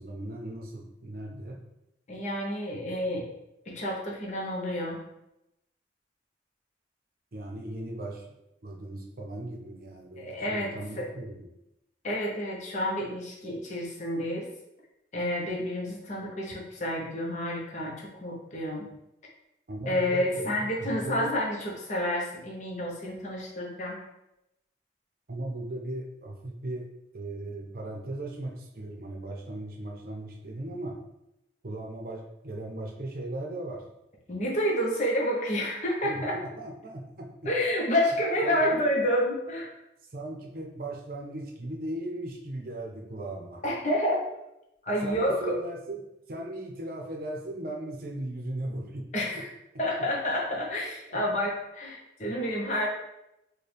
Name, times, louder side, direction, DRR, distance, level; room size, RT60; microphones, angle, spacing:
voice 1, 0.0-1.6 7.3-8.3 8.6-11.5 19.7-21.3 25.3-26.9 27.1-31.0 31.6-33.8 36.0-37.3 38.1-38.9 40.1-43.6 45.0-46.0 46.3-49.1 49.3-49.4 51.1-51.2, right 1 dB, 50° right, 0 dB, 0.6 m, -37 dB
voice 2, 2.1-3.3 3.7-5.0 10.2-10.7 11.0-11.1 12.0-14.5 15.1-18.9 19.9-24.0 34.3-36.4 37.5-39.7 43.6-44.2 44.8-45.6 49.1-49.5 49.8-52.9, equal, 40° left, -2 dB, 0.8 m, -29 dB
4.4 x 2.2 x 3.3 m, 0.88 s
head